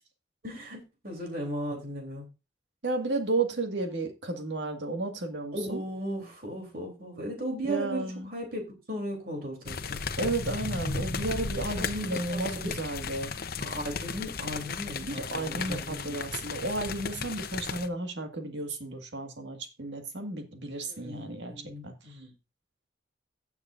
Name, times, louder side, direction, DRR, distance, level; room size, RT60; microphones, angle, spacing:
voice 1, 0.4-2.3 5.5-8.6 8.9-10.0 11.8-12.2 12.6-12.7 13.6-16.2 20.8-22.3, equal, 55° right, 3.2 m, -36 dB
voice 2, 2.8-5.8 7.6-8.3 10.2-13.3 15.0-22.2, right 2 dB, 80° right, 1.8 m, -33 dB
sound 1, 9.7-17.9, left 4 dB, 55° left, 0.8 m, -35 dB
16.0 x 7.1 x 2.5 m
head